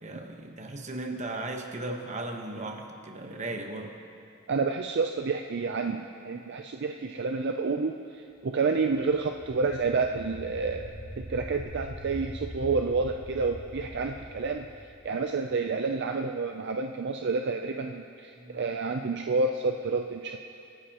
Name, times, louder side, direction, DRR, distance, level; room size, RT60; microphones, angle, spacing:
voice 1, 0.0-3.9 18.3-18.6, right 2 dB, 35° right, 3 dB, 1.1 m, -36 dB
voice 2, 4.5-8.0 8.4-10.9 11.3-14.6 15.0-20.4, right 4 dB, 55° right, 4 dB, 0.5 m, -29 dB
sound 1, 9.1-15.5, equal, 10° left, 2.1 m, -43 dB
25.0 x 10.0 x 3.0 m, 2.8 s
head